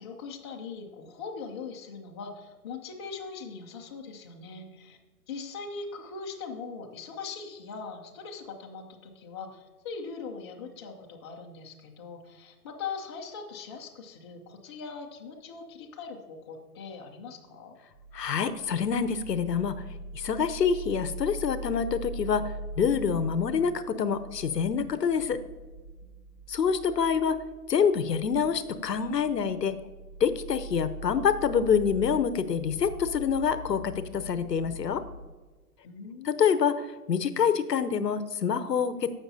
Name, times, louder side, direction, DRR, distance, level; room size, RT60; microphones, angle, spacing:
voice 1, 0.0-5.0 5.3-17.7 35.8-36.4, left 5 dB, 20° left, -1 dB, 0.5 m, -41 dB
sound 1, 17.9-35.3, right 1 dB, 25° right, 0.7 m, -42 dB
voice 2, 18.1-19.8 20.1-25.4 26.5-27.4 27.7-29.8 30.2-35.0 36.2-39.1, left 7 dB, 85° left, 12 dB, 0.9 m, -26 dB
15.0 x 6.0 x 2.7 m, 1.3 s
hypercardioid pair, 140°, 48 cm